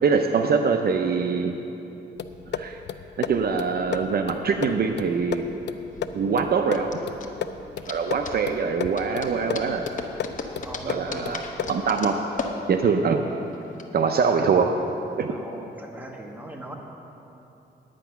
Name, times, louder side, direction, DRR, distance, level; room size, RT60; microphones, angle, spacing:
voice 1, 0.0-1.6 2.5-2.8 3.2-5.4 6.1-7.0 7.9-9.9 10.8-11.4 11.7-12.2 12.7-13.2 13.9-14.8 15.2-15.4, right 5 dB, 55° right, 5 dB, 0.6 m, -23 dB
sound 1, 2.2-11.9, left 7 dB, 70° left, 0.5 m, -34 dB
sound 2, 4.9-13.8, left 4 dB, 45° left, 0.9 m, -37 dB
voice 2, 10.6-11.4 13.9-14.4 15.3-16.8, right 1 dB, 10° right, 0 dB, 1.4 m, -39 dB
10.0 x 9.2 x 5.8 m, 2.9 s
cardioid pair, 115°, 19 cm